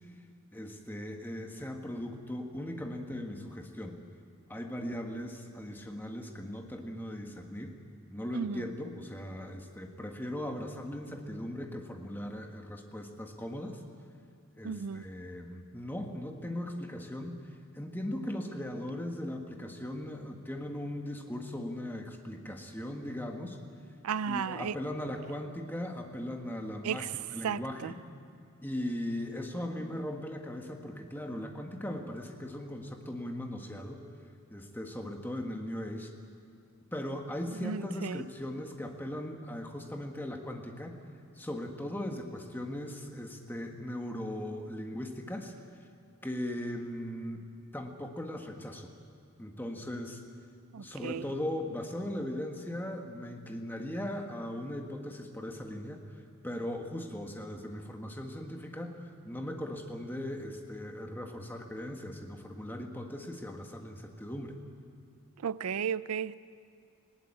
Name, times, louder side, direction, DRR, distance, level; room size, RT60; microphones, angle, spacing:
voice 1, 0.5-4.0 4.5-7.7 8.1-13.8 14.6-17.4 17.7-23.6 24.3-28.0 28.6-34.0 34.5-36.1 36.9-41.0 41.4-45.5 46.2-47.4 47.7-48.9 49.4-50.2 50.8-64.6, left 1 dB, 10° left, 1.5 m, -38 dB
voice 2, 14.6-15.1 24.0-24.7 26.8-27.1 27.4-27.9 37.6-38.3 50.7-51.2 65.4-66.3, right 7 dB, 90° right, 0.4 m, -34 dB
19.5 x 18.0 x 8.7 m
head